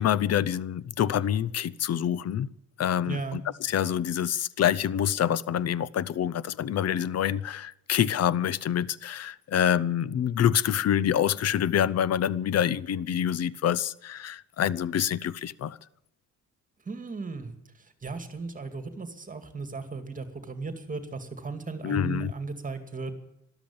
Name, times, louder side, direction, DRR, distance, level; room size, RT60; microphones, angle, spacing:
voice 1, 0.0-2.5 2.8-15.8 21.8-22.3, left 10 dB, 55° left, 0.8 m, -26 dB
voice 2, 3.0-3.4 16.9-17.5 17.8-23.1, right 4 dB, 25° right, 2.3 m, -36 dB
13.0 x 12.0 x 8.8 m
cardioid pair, 90°, 30 cm